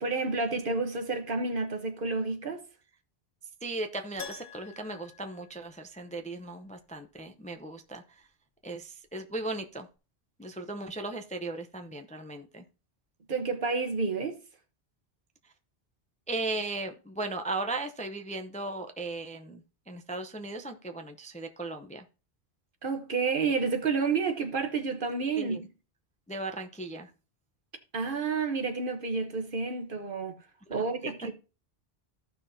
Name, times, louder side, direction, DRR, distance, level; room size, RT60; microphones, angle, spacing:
voice 1, 0.0-2.6 13.3-14.4 22.8-25.7 27.9-30.4 30.7-31.3, right 4 dB, 55° right, 1.2 m, -30 dB
voice 2, 3.6-8.3 8.6-9.9 10.4-12.6 16.3-22.0 25.4-25.6 26.3-27.1 30.7-30.8, right 2 dB, 10° left, 0.5 m, -37 dB
Keyboard (musical), 4.2-6.2 6.5-6.6 9.3-9.4 9.6-9.7, left 5 dB, 60° left, 1.3 m, -46 dB
15.0 x 5.8 x 2.7 m
omnidirectional pair, 1.1 m